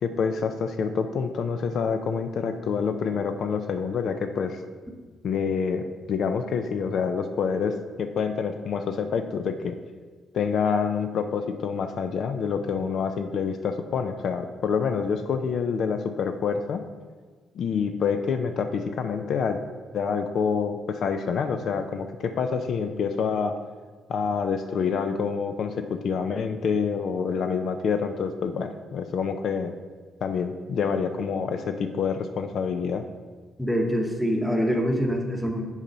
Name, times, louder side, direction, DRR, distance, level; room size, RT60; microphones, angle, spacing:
voice 1, 0.0-4.6 5.2-9.7 10.3-16.8 17.5-19.6 19.9-23.5 24.1-29.7 30.2-33.0, left 6 dB, 65° left, 7 dB, 0.4 m, -27 dB
voice 2, 33.6-35.6, equal, ahead, 2 dB, 1.1 m, -25 dB
7.1 x 4.0 x 5.4 m, 1.5 s
cardioid pair, 90°, 0 cm